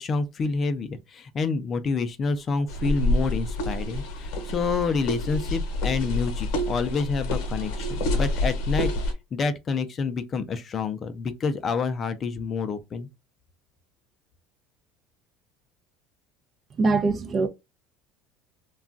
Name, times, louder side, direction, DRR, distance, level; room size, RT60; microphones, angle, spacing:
voice 1, 0.0-8.9 9.3-13.1, left 4 dB, 35° left, 0.4 m, -28 dB
sound 1, 2.7-9.1, left 1 dB, 75° left, 0.9 m, -27 dB
voice 2, 16.8-17.5, right 3 dB, 35° right, 0.5 m, -22 dB
2.3 x 2.3 x 3.7 m
supercardioid pair, 120°, 0 cm